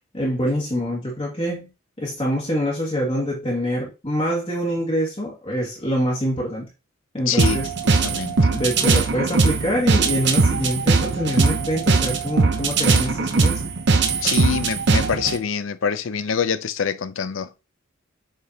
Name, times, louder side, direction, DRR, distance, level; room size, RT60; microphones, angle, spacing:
voice 1, 0.1-1.7 2.0-6.6 7.1-7.7 8.5-13.6, equal, 30° left, 1.9 m, -25 dB
voice 2, 7.3-8.4 14.2-17.5, left 6 dB, 75° left, 0.6 m, -25 dB
sound 1, 7.4-15.4, right 4 dB, 55° right, 0.8 m, -20 dB
7.8 x 4.4 x 2.8 m
head